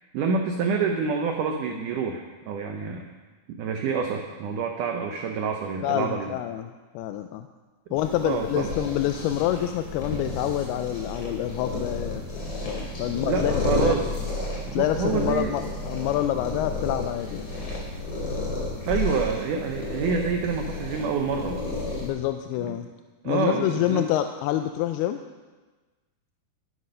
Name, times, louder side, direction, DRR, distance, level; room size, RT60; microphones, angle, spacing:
voice 1, 0.1-3.1 3.5-6.4 8.2-8.7 13.2-14.1 14.7-15.5 18.9-21.6 22.6-22.7 23.2-24.1, right 5 dB, 85° right, 4 dB, 1.8 m, -27 dB
voice 2, 5.8-7.5 7.9-12.3 12.7-14.0 14.7-17.5 22.0-22.9 23.3-25.2, left 12 dB, 85° left, 7 dB, 2.4 m, -27 dB
sound 1, 8.0-22.1, left 3 dB, 30° left, 2.9 m, -32 dB
12.5 x 9.7 x 5.5 m, 1.3 s
omnidirectional pair, 4.7 m